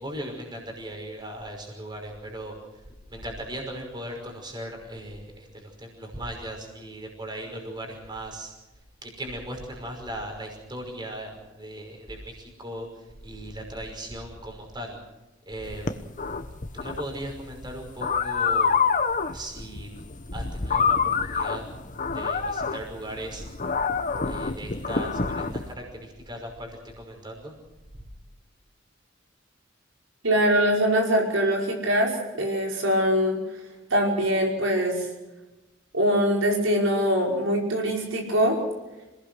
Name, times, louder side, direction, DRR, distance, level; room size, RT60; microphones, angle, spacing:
voice 1, 0.0-2.5 3.1-8.5 9.0-15.0 15.5-15.9 16.7-18.8 19.3-19.9 20.3-21.6 22.1-23.4 24.2-27.5, right 1 dB, 20° right, 2 dB, 5.6 m, -38 dB
sound 1, 15.7-25.7, left 5 dB, 40° left, 1.2 m, -27 dB
voice 2, 30.2-33.4 33.9-35.1 35.9-38.6, equal, 70° right, 0 dB, 5.5 m, -23 dB
27.0 x 19.0 x 6.3 m, 1.1 s
head